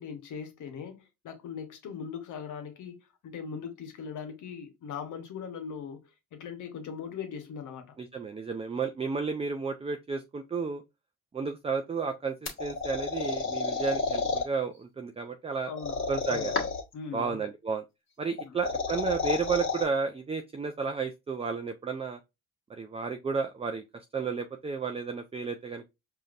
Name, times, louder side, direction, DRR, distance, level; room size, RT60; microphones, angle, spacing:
voice 1, 0.0-6.0 6.3-7.9 15.6-16.6 16.9-17.4 18.4-18.6, left 6 dB, 75° left, 1.2 m, -40 dB
voice 2, 8.0-10.8 11.3-15.7 16.1-16.5 17.1-17.8 18.2-22.2 22.7-23.8 24.1-25.9, right 5 dB, 20° right, 0.4 m, -32 dB
sound 1, 12.5-14.5 15.8-16.9 18.4-19.8, left 4 dB, 40° left, 1.5 m, -31 dB
4.9 x 2.8 x 2.5 m
cardioid pair, 90°, 30 cm